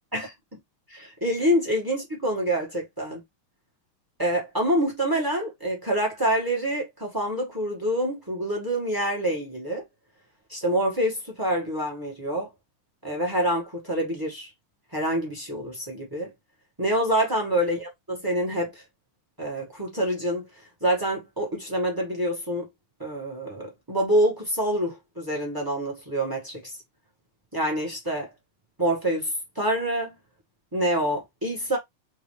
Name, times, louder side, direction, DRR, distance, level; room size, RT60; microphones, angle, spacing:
voice 1, 0.9-3.2 4.2-9.8 10.5-12.5 13.0-14.5 14.9-16.3 16.8-18.8 19.4-20.4 20.8-22.7 23.0-26.8 27.5-28.3 28.8-30.1 30.7-31.8, right 1 dB, 15° right, 0.8 m, -26 dB
3.8 x 2.6 x 3.0 m
omnidirectional pair, 2.4 m